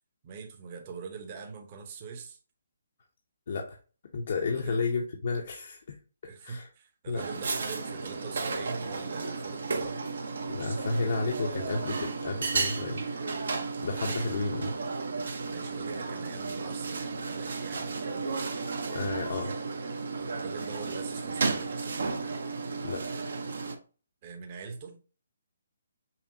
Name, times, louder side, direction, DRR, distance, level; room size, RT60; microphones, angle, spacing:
voice 1, 0.2-2.4 4.5-4.8 6.2-10.1 14.2-14.5 15.4-18.6 20.1-22.0 24.2-25.0, right 5 dB, 35° right, 0.7 m, -43 dB
voice 2, 3.5-3.8 4.1-6.0 6.4-6.7 7.1-7.2 9.8-9.9 10.5-13.0 13.8-14.7 18.9-19.5 22.8-23.0, left 3 dB, 55° left, 0.6 m, -32 dB
sound 1, 7.2-23.8, right 4 dB, 70° right, 0.8 m, -33 dB
5.6 x 2.2 x 2.7 m
hypercardioid pair, 160°, 0 cm